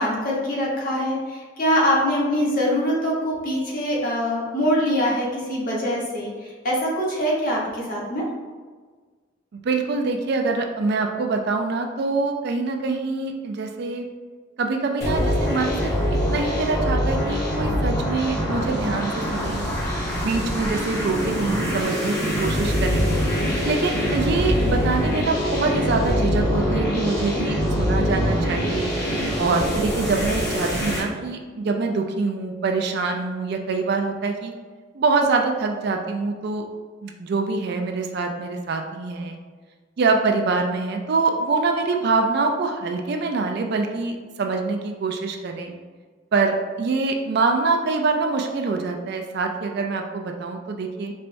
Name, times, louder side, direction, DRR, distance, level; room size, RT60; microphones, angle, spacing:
voice 1, 0.0-6.3 6.6-8.2, equal, 50° left, -4 dB, 1.0 m, -23 dB
voice 2, 9.5-14.0 14.6-15.9 16.3-19.6 20.2-23.1 23.6-28.9 29.4-34.5 34.9-36.7 37.0-39.4 40.0-45.7 46.3-51.1, right 3 dB, 60° right, 3 dB, 0.4 m, -25 dB
sound 1, 15.0-31.0, equal, 15° left, 1.1 m, -24 dB
4.3 x 3.2 x 2.6 m, 1.5 s
head